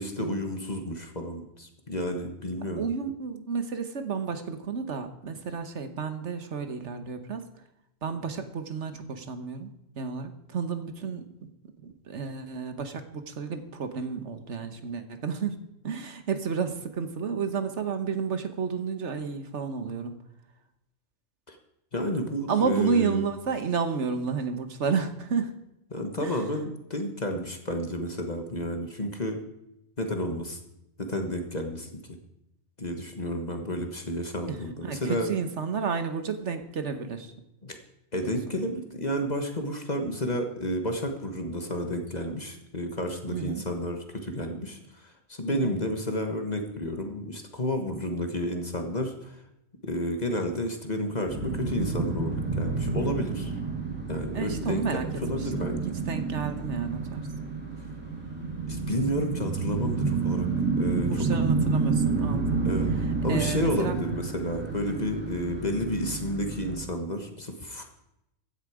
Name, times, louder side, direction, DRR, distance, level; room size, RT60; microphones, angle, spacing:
voice 1, 0.0-2.8 21.5-21.6 21.9-23.2 25.9-29.4 30.0-30.6 31.0-32.2 32.8-35.3 37.6-37.8 38.1-49.4 49.8-53.5 54.1-55.9 58.7-60.5 60.8-61.2 62.6-62.9 63.2-67.8, equal, 35° left, 5 dB, 1.5 m, -31 dB
voice 2, 2.8-7.4 8.0-11.5 12.0-20.2 22.5-25.5 26.2-26.4 34.4-37.3 38.2-38.3 43.3-43.6 45.5-45.7 54.3-55.1 55.4-57.3 61.0-62.6 63.3-63.9, right 5 dB, 60° right, 9 dB, 1.4 m, -31 dB
sound 1, 51.3-66.8, right 4 dB, 5° right, 2.9 m, -29 dB
15.5 x 10.0 x 4.9 m, 0.85 s
omnidirectional pair, 1.4 m